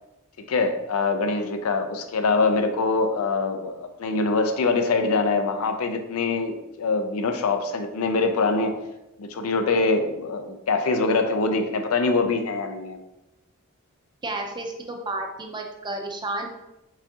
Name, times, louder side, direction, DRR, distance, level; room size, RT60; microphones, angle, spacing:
voice 1, 0.5-8.8 9.2-13.0, left 3 dB, 75° left, 7 dB, 0.5 m, -24 dB
voice 2, 14.2-16.5, right 2 dB, 20° right, 2 dB, 0.5 m, -31 dB
4.9 x 3.5 x 2.8 m, 0.93 s
head